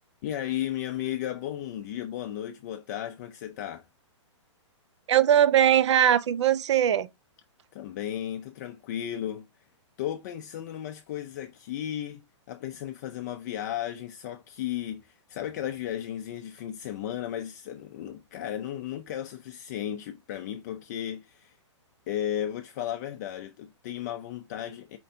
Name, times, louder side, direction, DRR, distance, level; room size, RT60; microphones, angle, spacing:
voice 1, 0.2-3.9 7.7-9.5 10.0-21.6 22.1-25.0, left 11 dB, 35° left, 0.4 m, -34 dB
voice 2, 5.1-7.1, right 10 dB, 65° right, 0.6 m, -20 dB
4.5 x 2.6 x 4.2 m
hypercardioid pair, 155°, 16 cm